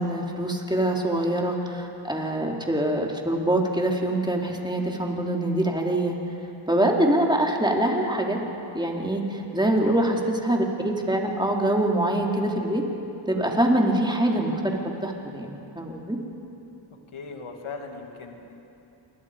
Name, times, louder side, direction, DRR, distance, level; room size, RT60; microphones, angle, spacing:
voice 1, 0.0-6.1 6.7-8.4 8.7-10.2 10.4-12.8 13.3-16.2, right 1 dB, 10° right, 0 dB, 3.8 m, -24 dB
voice 2, 9.8-10.3 17.1-18.6, left 4 dB, 75° left, 3 dB, 2.6 m, -38 dB
28.0 x 21.5 x 5.2 m, 2.9 s
cardioid pair, 45°, 49 cm